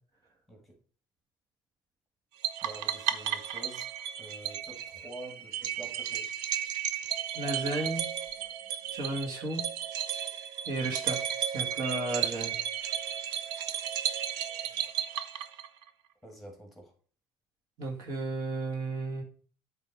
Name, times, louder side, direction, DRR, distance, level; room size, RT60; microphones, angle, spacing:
sound 1, 2.4-15.9, right 10 dB, 80° right, 0.6 m, -34 dB
voice 1, 2.6-3.9 4.2-6.3 16.2-16.9, right 1 dB, ahead, 2 dB, 1.9 m, -47 dB
voice 2, 7.3-8.1 8.9-9.6 10.7-11.2 11.5-12.5 17.8-19.2, right 2 dB, 65° right, 1 dB, 2.2 m, -33 dB
8.3 x 3.4 x 4.8 m, 0.43 s
cardioid pair, 120°, 7 cm